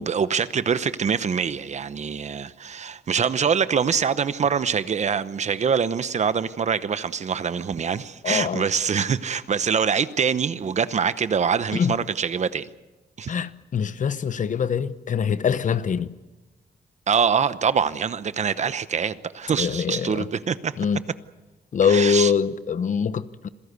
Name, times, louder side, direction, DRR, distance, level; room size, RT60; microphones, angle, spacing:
voice 1, 0.0-12.7 13.2-13.3 17.1-20.8 21.8-22.3, right 6 dB, 45° right, 0.8 m, -24 dB
voice 2, 8.2-8.7 11.7-11.9 13.3-16.1 19.6-20.3 20.8-21.0 21.7-23.5, left 7 dB, 50° left, 0.9 m, -23 dB
27.0 x 16.5 x 8.2 m
wide cardioid pair, 130°, 17 cm